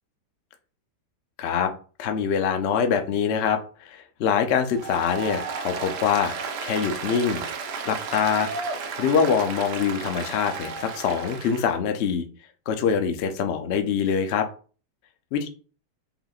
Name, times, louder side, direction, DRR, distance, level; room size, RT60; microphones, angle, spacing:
voice 1, 1.4-1.7 2.0-6.3 6.6-7.4 7.8-8.5 9.0-12.3 12.7-14.5 15.3-15.5, left 7 dB, 65° left, 6 dB, 0.6 m, -24 dB
Applause, 4.7-11.7, right 5 dB, 75° right, 1.2 m, -33 dB
5.6 x 3.5 x 2.4 m, 0.39 s
omnidirectional pair, 1.9 m